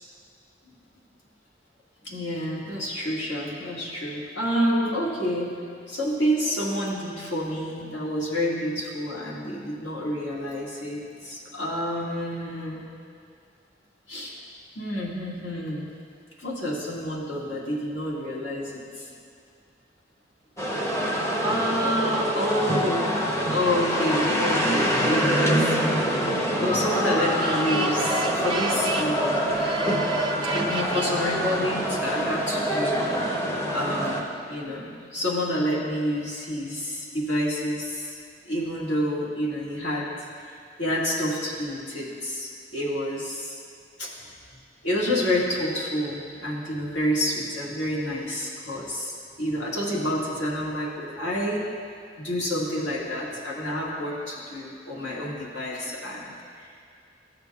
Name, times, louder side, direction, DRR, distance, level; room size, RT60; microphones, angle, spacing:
voice 1, 2.0-5.5 5.9-12.9 14.1-14.3 14.8-15.9 16.4-19.1 21.2-23.2 23.5-25.8 26.3-29.6 30.7-38.1 38.5-40.3 40.8-43.6 44.0-44.2 44.8-49.1 49.4-51.6 52.2-56.9, equal, 75° left, -6 dB, 1.8 m, -29 dB
sound 1, 20.6-34.2, equal, 15° left, 0.8 m, -25 dB
sound 2, 26.4-31.1, right 4 dB, 25° right, 0.4 m, -33 dB
14.5 x 6.7 x 2.3 m, 2.3 s
head